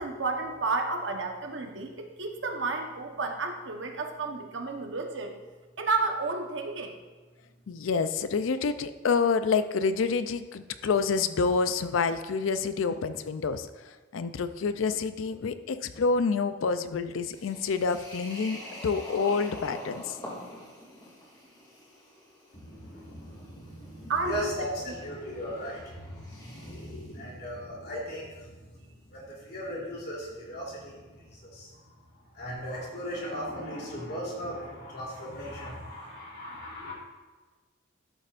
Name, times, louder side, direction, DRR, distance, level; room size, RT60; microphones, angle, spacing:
voice 1, 0.0-5.4 5.8-7.0 24.1-24.5, right 3 dB, 70° right, 3 dB, 1.1 m, -31 dB
voice 2, 7.7-20.2, left 5 dB, 85° left, 11 dB, 0.4 m, -28 dB
sound 1, 17.3-27.1, left 1 dB, 20° left, 2.5 m, -46 dB
voice 3, 22.5-28.7 29.1-31.8 32.1-36.9, equal, 55° left, -4 dB, 3.1 m, -38 dB
13.0 x 7.5 x 2.5 m, 1.3 s
head